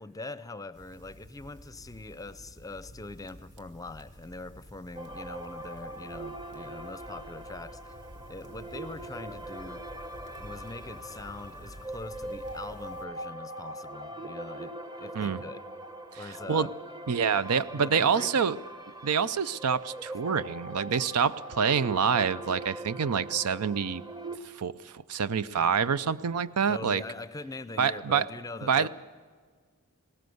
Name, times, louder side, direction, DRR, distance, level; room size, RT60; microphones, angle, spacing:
voice 1, 0.0-8.0 8.3-9.8 10.4-15.6 16.2-16.7 17.7-18.4 20.1-20.2 26.7-28.9, left 2 dB, 15° left, 0.6 m, -42 dB
sound 1, 0.7-13.0, equal, 55° right, 1.6 m, -51 dB
sound 2, 4.9-24.4, right 1 dB, 20° right, 0.9 m, -42 dB
voice 2, 16.1-16.7 17.1-18.6 19.0-24.0 24.4-27.0 27.8-28.2 28.7-28.9, right 6 dB, 85° right, 0.6 m, -27 dB
19.0 x 18.5 x 7.9 m
head